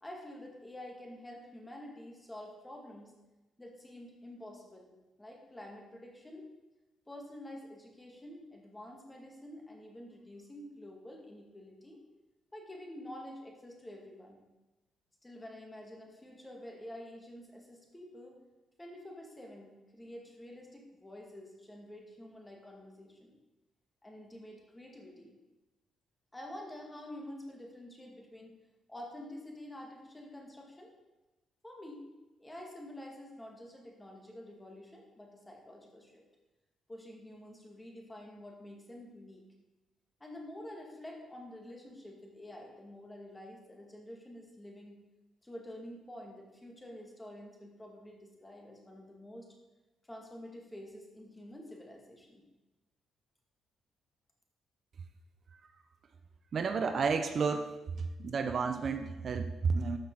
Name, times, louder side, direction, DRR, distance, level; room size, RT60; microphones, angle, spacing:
voice 1, 0.0-3.1 3.6-4.9 5.2-6.5 7.1-12.0 12.5-14.5 15.2-18.4 18.8-23.4 24.0-25.4 26.3-28.6 28.9-30.9 31.6-32.1 32.4-36.2 36.9-39.4 40.2-45.0 45.4-49.5 50.1-52.4, left 1 dB, 15° left, 0 dB, 2.2 m, -48 dB
voice 2, 56.5-57.7 58.2-60.0, right 5 dB, 50° right, 7 dB, 0.6 m, -31 dB
13.0 x 6.0 x 4.0 m, 1.1 s
cardioid pair, 90°, 0 cm